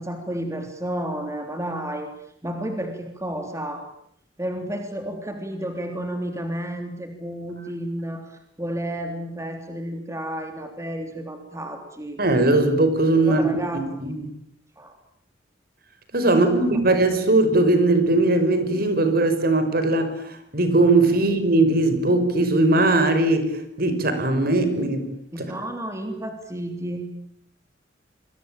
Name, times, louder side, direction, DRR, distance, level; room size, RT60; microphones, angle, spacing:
voice 1, 0.0-2.1 2.4-3.8 4.4-12.2 13.2-13.8 14.8-15.0 16.2-16.8 21.1-21.2 25.3-27.1, right 1 dB, 15° right, 5 dB, 3.3 m, -31 dB
voice 2, 12.2-14.2 16.1-20.1 20.5-23.5 23.8-25.1 25.4-25.5, right 2 dB, 55° right, 9 dB, 5.6 m, -19 dB
29.5 x 22.5 x 9.0 m, 0.71 s
head